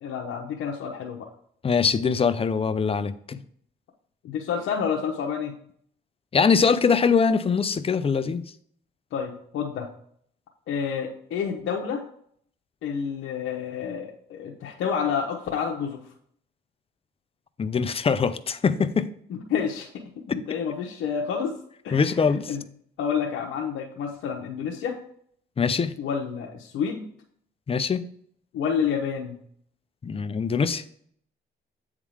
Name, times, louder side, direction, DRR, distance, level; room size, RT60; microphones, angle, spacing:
voice 1, 0.0-1.2 4.2-5.5 9.1-9.9 10.7-12.0 12.8-16.0 19.3-19.9 20.3-21.5 21.8-22.6 23.0-25.0 26.0-27.1 28.5-29.4, left 7 dB, 85° left, 0 dB, 0.9 m, -29 dB
voice 2, 1.6-3.4 6.3-8.4 17.6-19.1 21.9-22.5 25.6-25.9 27.7-28.0 30.0-30.8, left 5 dB, 30° left, 12 dB, 0.6 m, -23 dB
8.3 x 3.7 x 4.8 m, 0.63 s
cardioid pair, 90°, 20 cm